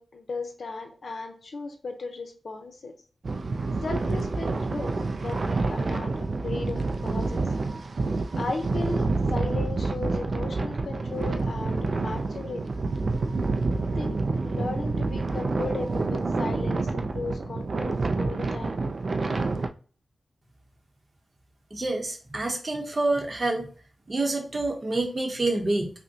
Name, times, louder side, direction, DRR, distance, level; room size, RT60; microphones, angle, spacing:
voice 1, 0.0-3.0 3.8-7.4 8.4-12.8 13.6-18.8, left 3 dB, 65° left, 4 dB, 0.7 m, -36 dB
sound 1, 3.2-19.7, right 3 dB, 55° right, 0.3 m, -28 dB
voice 2, 21.7-23.7 24.1-25.9, right 2 dB, 35° right, 2 dB, 0.8 m, -27 dB
5.3 x 2.1 x 2.7 m, 0.41 s
wide cardioid pair, 120°, 0 cm